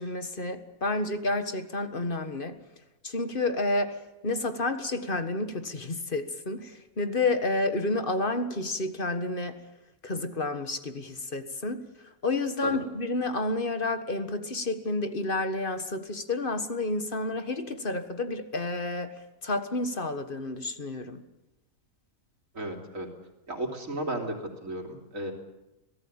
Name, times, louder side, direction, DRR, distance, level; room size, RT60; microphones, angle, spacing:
voice 1, 0.0-2.6 3.0-9.6 10.0-21.2, left 2 dB, 40° left, 9 dB, 1.7 m, -30 dB
voice 2, 22.5-23.1 23.5-25.3, right 1 dB, 65° right, 2 dB, 3.7 m, -34 dB
25.0 x 17.5 x 8.9 m, 0.96 s
omnidirectional pair, 1.5 m